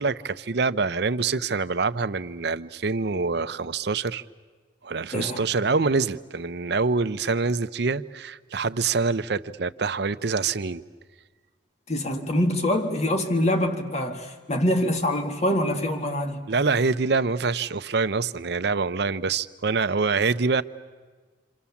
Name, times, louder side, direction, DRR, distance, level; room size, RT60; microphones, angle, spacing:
voice 1, 0.0-4.2 4.8-10.8 16.5-20.6, right 4 dB, 65° right, 0.7 m, -25 dB
voice 2, 5.1-5.4 11.9-16.5, left 1 dB, 40° left, 1.9 m, -25 dB
27.5 x 27.5 x 7.2 m
head